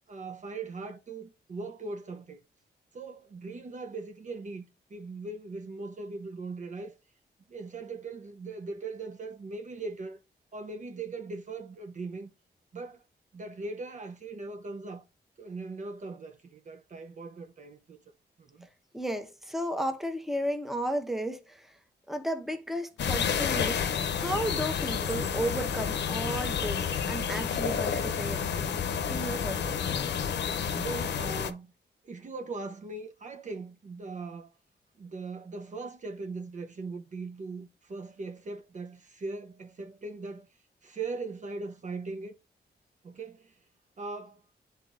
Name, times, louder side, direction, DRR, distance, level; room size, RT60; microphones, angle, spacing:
voice 1, 0.1-2.4 2.9-6.9 7.5-10.2 10.5-12.3 12.7-13.0 13.3-15.0 15.4-18.0 18.4-18.7 30.7-31.7 32.0-34.5 35.0-40.5 40.8-42.3 43.0-43.6 44.0-44.4, right 3 dB, 45° right, 0.6 m, -40 dB
voice 2, 18.9-21.8 22.1-23.8 24.1-28.8 29.1-29.6 29.9-30.0, equal, ahead, 0.9 m, -33 dB
sound 1, 23.0-31.5, left 7 dB, 80° left, 0.7 m, -30 dB
9.6 x 4.0 x 2.5 m
cardioid pair, 90°, 18 cm